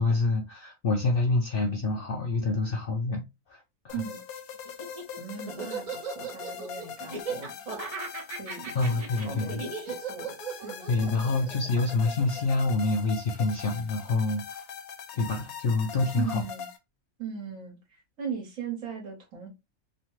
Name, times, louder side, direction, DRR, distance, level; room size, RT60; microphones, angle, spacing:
voice 1, 0.0-3.2 3.5-3.9 8.7-9.6 10.9-14.7 15.1-16.4, left 3 dB, 60° left, 0.6 m, -27 dB
sound 1, 3.9-16.8, left 7 dB, 90° left, 1.1 m, -42 dB
Laughter, 4.7-13.1, right 5 dB, 35° right, 0.6 m, -37 dB
voice 2, 5.2-7.5 8.4-10.3 10.6-11.4 16.1-16.7 17.2-19.5, right 6 dB, 70° right, 1.5 m, -38 dB
3.1 x 2.1 x 2.9 m
omnidirectional pair, 1.5 m